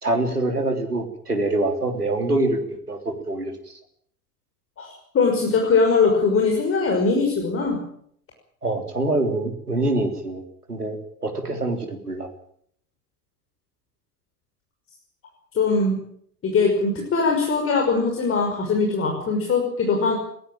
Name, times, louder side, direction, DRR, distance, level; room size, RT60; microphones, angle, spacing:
voice 1, 0.0-3.5 8.6-10.4 10.7-11.0 11.2-12.3, right 2 dB, 85° right, 6 dB, 3.5 m, -25 dB
voice 2, 4.8-7.8 15.5-16.0 16.4-20.2, left 4 dB, 30° left, 1 dB, 5.9 m, -21 dB
21.5 x 16.5 x 9.1 m, 0.67 s
figure-of-eight pair, 80°, 45 cm